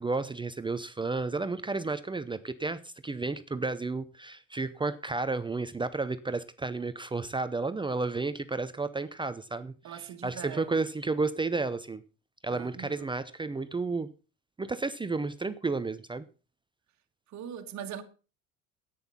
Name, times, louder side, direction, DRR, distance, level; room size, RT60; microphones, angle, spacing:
voice 1, 0.0-12.0 12.4-14.1 14.6-16.3, right 3 dB, 15° right, 0.7 m, -32 dB
voice 2, 9.8-10.7 12.5-13.1 17.3-18.0, right 9 dB, 45° right, 1.8 m, -41 dB
10.5 x 9.3 x 5.6 m
supercardioid pair, 90°, 38 cm